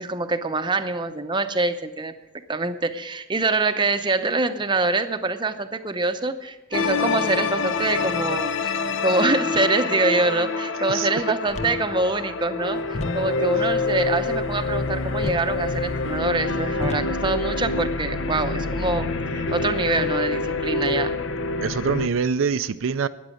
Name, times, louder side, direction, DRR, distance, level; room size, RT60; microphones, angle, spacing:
voice 1, 0.0-2.1 2.5-8.5 9.0-21.1, right 3 dB, 25° right, 9 dB, 0.7 m, -25 dB
sound 1, 6.7-22.1, left 3 dB, 65° left, 0.7 m, -26 dB
sound 2, 11.5-18.9, left 1 dB, 35° left, 0.7 m, -37 dB
voice 2, 21.6-23.1, right 6 dB, 75° right, 11 dB, 0.4 m, -24 dB
13.0 x 9.5 x 6.3 m, 1.0 s
head